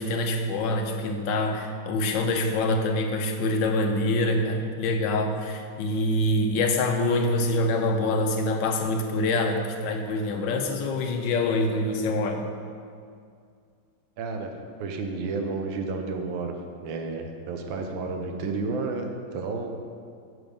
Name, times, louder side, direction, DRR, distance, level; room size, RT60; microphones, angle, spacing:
voice 1, 0.0-12.4, left 2 dB, 75° left, 5 dB, 1.4 m, -25 dB
voice 2, 14.2-14.5 14.8-16.5 16.8-19.7, right 3 dB, 85° right, 4 dB, 1.6 m, -31 dB
7.2 x 6.6 x 5.2 m, 2.3 s
omnidirectional pair, 2.1 m